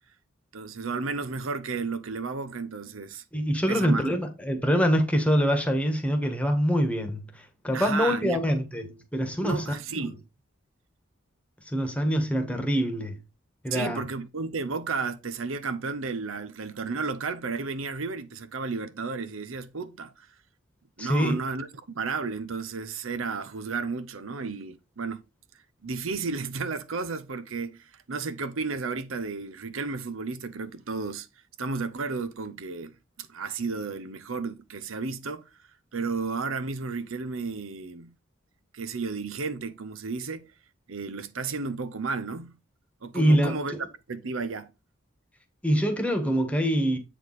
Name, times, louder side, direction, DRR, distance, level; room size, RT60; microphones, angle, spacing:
voice 1, 0.5-3.2 3.7-4.0 7.7-8.4 9.4-10.2 13.7-20.3 21.0-21.7 21.9-25.2 25.8-31.3 31.6-35.5 35.9-38.1 38.7-40.5 40.9-42.6 43.0-43.7 44.1-44.7, right 4 dB, 80° right, 0.8 m, -33 dB
voice 2, 3.3-7.2 7.6-9.6 9.9-10.1 11.7-13.2 13.6-14.0 21.0-21.3 43.1-43.6 45.6-47.0, equal, 5° left, 1.3 m, -24 dB
8.0 x 4.7 x 4.0 m
head